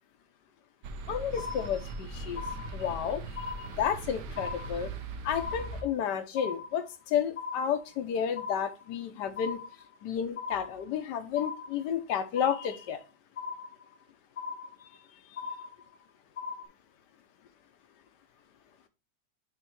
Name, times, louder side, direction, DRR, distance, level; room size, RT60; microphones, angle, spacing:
sound 1, 0.8-5.8, right 2 dB, 75° right, 1.3 m, -40 dB
voice 1, 1.1-2.4 2.7-3.2 3.8-4.9 5.2-6.8 7.1-9.6 10.0-13.0, left 8 dB, 75° left, 1.4 m, -31 dB
sound 2, 1.4-2.0 2.4-3.0 3.4-4.0 4.4-5.0 5.4-6.0 6.4-7.0 7.4-8.0 8.4-9.0 9.4-10.0 10.4-11.0 11.4-12.0 12.4-13.0 13.4-14.0 14.4-15.0 15.4-16.0 16.4-16.6, left 5 dB, 55° left, 0.6 m, -40 dB
7.1 x 3.1 x 4.4 m
omnidirectional pair, 1.9 m